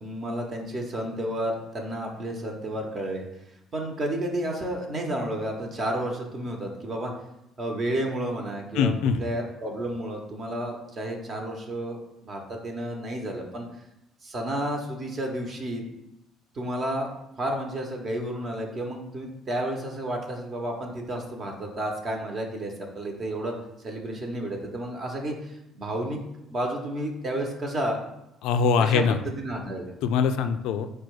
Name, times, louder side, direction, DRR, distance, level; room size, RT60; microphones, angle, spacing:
voice 1, 0.0-3.2 3.7-7.1 7.6-8.9 9.2-13.7 14.2-15.8 16.5-17.1 17.4-23.5 23.8-26.2 26.5-28.0 28.8-29.9, right 1 dB, 45° right, 1 dB, 0.9 m, -31 dB
voice 2, 8.8-9.2 28.4-29.2 30.0-30.9, left 6 dB, 80° left, 9 dB, 0.3 m, -22 dB
4.4 x 2.3 x 4.7 m, 0.86 s
supercardioid pair, 80°, 0 cm